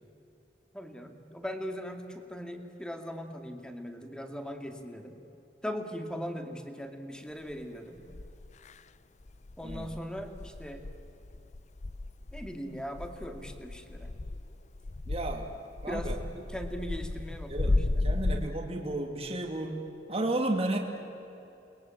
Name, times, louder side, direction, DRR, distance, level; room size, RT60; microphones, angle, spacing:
voice 1, 0.7-5.2 5.6-8.0 9.6-10.8 12.3-14.1 15.9-16.2 16.5-18.1, equal, 5° left, 5 dB, 2.2 m, -39 dB
sound 1, 7.5-7.6 8.1-8.8 9.2-18.5, left 2 dB, 45° left, 0.6 m, -34 dB
voice 2, 15.1-15.5 15.8-16.4 17.5-17.7 18.0-19.8 20.1-20.8, right 2 dB, 35° right, 1 dB, 2.3 m, -33 dB
29.0 x 21.5 x 9.0 m, 2.9 s
head